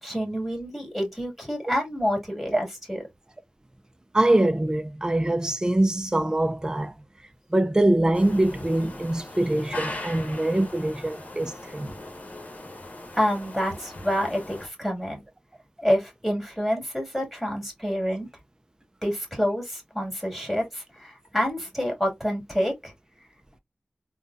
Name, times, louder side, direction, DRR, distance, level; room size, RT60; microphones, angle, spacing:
voice 1, 0.0-3.0 13.2-15.2 15.8-18.3 19.0-22.9, equal, ahead, 2.3 m, -28 dB
voice 2, 4.1-6.9 7.5-11.9, right 1 dB, 20° right, 0.4 m, -23 dB
sound 1, 8.1-14.7, left 1 dB, 50° left, 1.2 m, -39 dB
3.7 x 2.2 x 2.5 m
cardioid pair, 45°, 3 cm